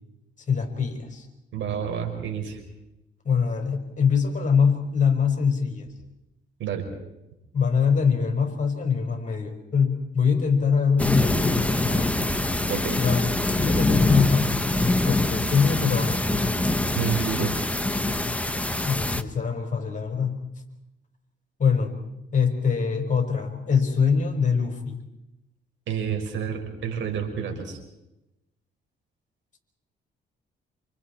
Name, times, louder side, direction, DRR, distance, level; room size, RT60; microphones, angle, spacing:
voice 1, 0.5-1.3 3.2-5.9 7.5-12.1 13.0-13.3 13.6-16.4 18.8-20.5 21.6-22.0 22.3-25.0, left 6 dB, 40° left, 4 dB, 4.8 m, -23 dB
voice 2, 1.5-2.6 6.6-6.9 12.7-13.0 17.0-17.7 25.9-27.8, right 7 dB, 70° right, 3 dB, 5.7 m, -29 dB
sound 1, 11.0-19.2, left 1 dB, 5° left, 1.3 m, -24 dB
29.0 x 27.5 x 4.4 m, 0.93 s
cardioid pair, 90°, 20 cm